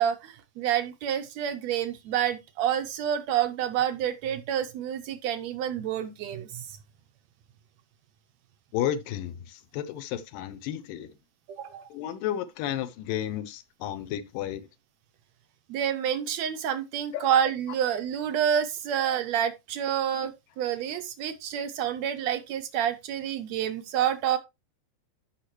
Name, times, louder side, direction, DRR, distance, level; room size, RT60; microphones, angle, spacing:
voice 1, 0.0-6.7 11.5-11.9 15.7-20.3 20.6-24.4, right 9 dB, 80° right, 1.6 m, -28 dB
voice 2, 8.7-11.1 11.9-14.6 17.1-17.3, left 11 dB, 90° left, 2.4 m, -32 dB
13.0 x 5.8 x 3.1 m
omnidirectional pair, 3.8 m